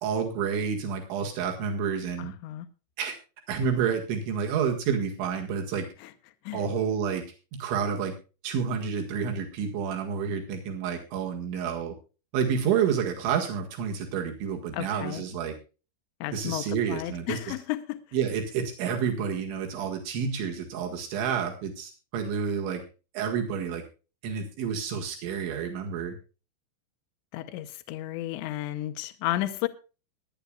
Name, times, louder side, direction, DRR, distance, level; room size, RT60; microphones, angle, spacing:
voice 1, 0.0-2.3 3.0-3.1 3.5-5.9 6.5-7.2 7.5-8.1 8.4-11.9 12.3-15.5 16.3-17.5 18.1-22.8 23.1-23.8 24.2-26.1, right 7 dB, 85° right, 4.2 m, -29 dB
voice 2, 2.2-2.7 6.0-6.1 6.5-6.6 14.7-15.2 16.2-18.0 27.3-29.7, left 15 dB, 80° left, 3.2 m, -33 dB
22.0 x 10.5 x 2.4 m
omnidirectional pair, 5.2 m